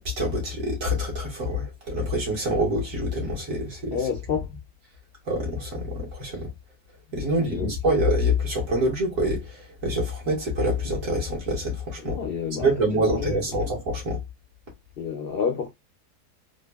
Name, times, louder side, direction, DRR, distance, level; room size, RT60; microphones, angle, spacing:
voice 1, 0.0-4.0 5.3-6.5 7.1-12.2 12.6-14.2, equal, 55° right, 1.8 m, -26 dB
voice 2, 3.9-4.5 7.2-7.7 12.0-13.7 15.0-15.7, left 6 dB, 65° left, 0.5 m, -30 dB
3.6 x 2.6 x 2.2 m
omnidirectional pair, 1.7 m